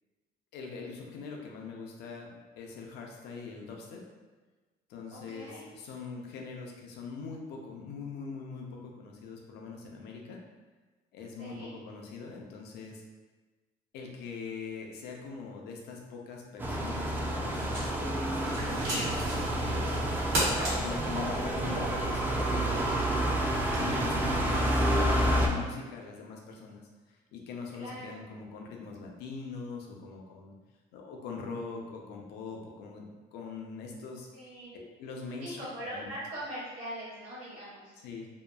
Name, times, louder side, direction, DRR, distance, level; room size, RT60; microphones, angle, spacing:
voice 1, 0.5-4.0 4.9-10.4 11.1-13.0 13.9-19.9 20.7-22.9 23.7-24.9 25.2-30.6 30.9-34.3 34.7-35.7 35.9-36.1 38.0-38.3, left 4 dB, 80° left, 0 dB, 0.5 m, -42 dB
voice 2, 5.1-5.7 11.4-11.7 27.8-28.2 34.3-34.7 35.4-37.9, equal, 35° right, -11 dB, 0.9 m, -41 dB
sound 1, 16.6-25.5, right 1 dB, 10° right, 0.3 m, -29 dB
sound 2, 17.4-24.9, right 1 dB, 90° right, 1.2 m, -37 dB
2.7 x 2.3 x 2.2 m, 1.3 s
cardioid pair, 110°, 17 cm